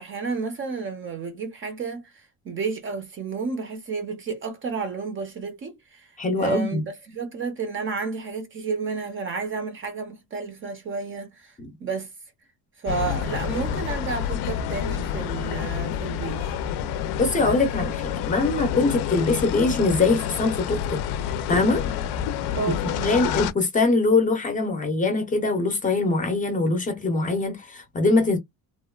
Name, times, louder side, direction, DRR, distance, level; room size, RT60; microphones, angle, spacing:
voice 1, 0.0-6.1 6.4-12.1 12.8-16.6 22.5-23.3, right 5 dB, 30° right, 0.4 m, -31 dB
voice 2, 6.2-6.8 11.6-11.7 17.2-21.0 21.5-22.0 23.0-28.4, left 3 dB, 20° left, 0.5 m, -23 dB
sound 1, 12.9-23.5, left 9 dB, 80° left, 0.5 m, -28 dB
2.9 x 2.2 x 2.3 m
cardioid pair, 175°, 39 cm